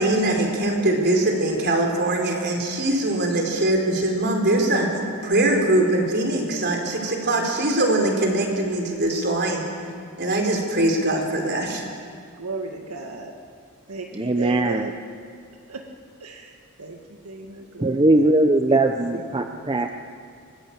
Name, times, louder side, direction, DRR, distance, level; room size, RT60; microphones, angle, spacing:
voice 1, 0.0-4.9 5.2-9.6 10.2-11.8, right 1 dB, 50° right, 2 dB, 4.4 m, -22 dB
voice 2, 12.4-13.3 13.9-14.9 15.7-15.8 16.2-16.5 16.8-17.0 17.2-18.2 19.1-19.9, right 3 dB, 75° right, 2 dB, 1.9 m, -35 dB
voice 3, 14.1-14.9 17.8-19.9, right 2 dB, 20° right, 5 dB, 0.8 m, -20 dB
24.0 x 20.0 x 8.8 m, 2.2 s
head